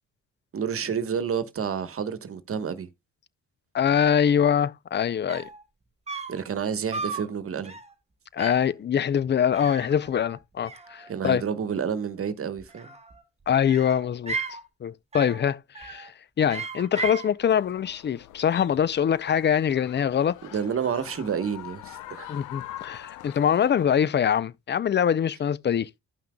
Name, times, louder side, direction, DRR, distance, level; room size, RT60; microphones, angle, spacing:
voice 1, 0.5-2.9 6.3-7.7 11.1-12.9 20.5-22.3, right 7 dB, 45° right, 1.2 m, -29 dB
voice 2, 3.7-5.5 8.3-11.4 13.5-14.4 14.8-20.4 22.3-26.0, left 8 dB, 35° left, 0.5 m, -24 dB
sound 1, 5.0-5.1 5.3-5.6 6.1-6.4 6.9-7.3 7.6-7.9 8.4-8.7 9.5-10.4 10.6-11.4 12.6-13.2 13.7-14.6 15.1-15.4 15.7-16.1 16.5-17.3, right 4 dB, 20° right, 1.7 m, -35 dB
sound 2, 17.4-23.9, left 14 dB, 85° left, 0.8 m, -44 dB
15.5 x 5.8 x 2.2 m
cardioid pair, 90°, 30 cm